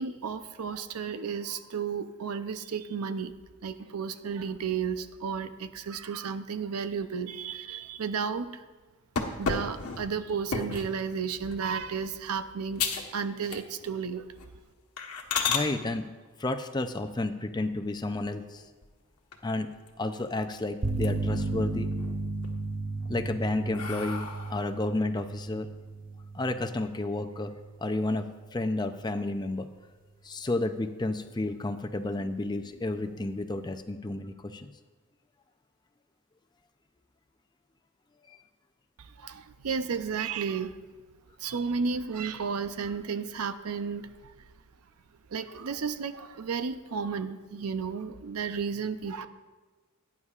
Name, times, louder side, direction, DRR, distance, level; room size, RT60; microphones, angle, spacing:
voice 1, 0.0-3.3 3.6-8.6 9.4-12.8 13.1-14.3 39.0-40.8 41.4-44.3 45.3-49.3, right 6 dB, 85° right, 11 dB, 0.6 m, -33 dB
sound 1, 9.2-10.9 11.5-11.8 12.2-12.3 12.8-13.1 13.4-14.0 14.3-14.5 15.0-15.7 17.7-18.3 18.8-18.9 19.3-19.4 19.7-20.5 20.8-21.4 21.8-22.5 23.0-24.7, left 5 dB, 90° left, 1.2 m, -33 dB
voice 2, 15.5-16.0 16.4-18.7 19.4-19.7 20.0-21.9 23.1-25.7 26.3-27.5 27.8-29.7 30.2-34.7, left 2 dB, 20° left, 8 dB, 0.5 m, -31 dB
sound 2, 20.8-28.5, right 3 dB, 40° right, 0.7 m, -35 dB
17.5 x 9.6 x 2.4 m, 1.3 s
head